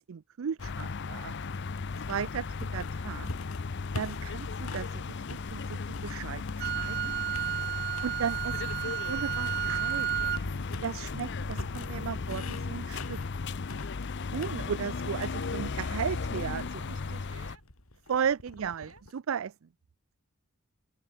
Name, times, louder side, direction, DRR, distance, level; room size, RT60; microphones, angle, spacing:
voice 1, 0.1-1.3 2.0-3.3 3.9-5.0 5.3-7.1 8.0-10.1 10.8-13.2 14.3-16.8 18.1-19.5, right 7 dB, 70° right, 0.4 m, -35 dB
sound 1, 0.6-17.6, left 4 dB, 55° left, 0.6 m, -36 dB
sound 2, 1.1-5.0 5.3-7.0 7.3-8.2 8.6-19.1, left 2 dB, 90° left, 3.3 m, -45 dB
Wind instrument woodwind instrument, 6.6-10.5, right 10 dB, 50° right, 0.8 m, -32 dB
voice 2, 8.6-9.2 15.3-15.6 16.8-17.6 18.8-19.0, right 4 dB, 90° right, 6.2 m, -55 dB
open air
head